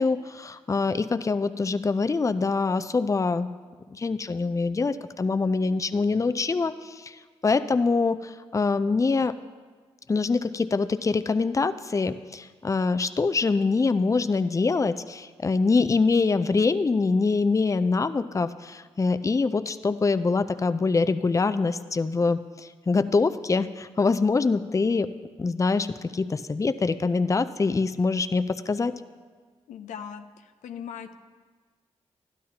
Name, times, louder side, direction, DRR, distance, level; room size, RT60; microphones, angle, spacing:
voice 1, 0.0-3.5 3.9-7.1 7.4-9.3 10.1-22.4 22.9-25.1 25.4-28.9, left 4 dB, 25° left, 11 dB, 0.4 m, -24 dB
voice 2, 29.7-31.1, left 8 dB, 85° left, 8 dB, 0.4 m, -39 dB
12.5 x 10.0 x 2.9 m, 1.5 s
supercardioid pair, 40°, 12 cm